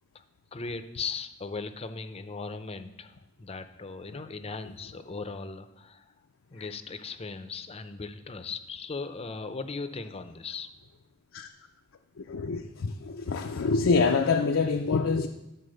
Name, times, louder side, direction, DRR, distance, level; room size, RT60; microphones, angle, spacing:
voice 1, 0.5-6.1 6.5-10.7, left 4 dB, 30° left, 10 dB, 0.5 m, -38 dB
voice 2, 12.2-15.3, left 4 dB, 80° left, 4 dB, 0.5 m, -26 dB
12.0 x 4.1 x 6.4 m, 0.98 s
head